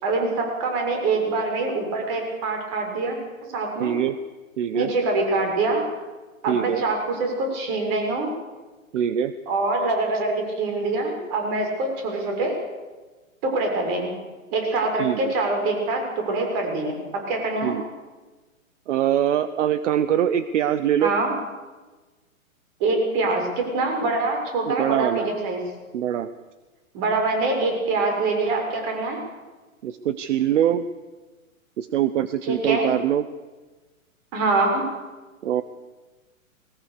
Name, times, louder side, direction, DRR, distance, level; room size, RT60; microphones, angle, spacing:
voice 1, 0.0-3.2 3.5-3.9 4.7-5.8 6.4-8.3 9.5-12.5 13.4-14.2 14.5-17.0 17.3-17.8 21.0-21.3 22.8-25.6 26.9-29.2 32.4-32.9 34.3-34.9, right 3 dB, 35° right, 2 dB, 6.6 m, -24 dB
voice 2, 3.8-4.2 4.6-4.9 6.5-6.8 8.9-9.3 15.0-15.3 17.6-17.8 18.9-21.1 24.7-25.3 25.9-26.3 29.8-30.9 31.8-33.3 35.4-35.6, right 10 dB, 60° right, 13 dB, 1.0 m, -23 dB
21.0 x 19.0 x 6.8 m, 1.3 s
hypercardioid pair, 135°, 42 cm